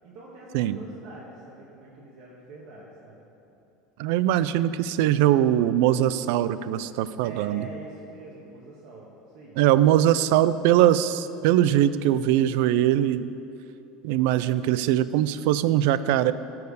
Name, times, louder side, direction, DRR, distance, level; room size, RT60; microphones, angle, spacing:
voice 1, 0.0-3.2 7.2-9.6, right 2 dB, 55° right, -5 dB, 1.6 m, -44 dB
voice 2, 4.0-7.7 9.6-13.3 14.0-16.3, right 12 dB, 75° right, 15 dB, 0.4 m, -21 dB
13.5 x 4.7 x 6.5 m, 2.9 s
cardioid pair, 145°, 0 cm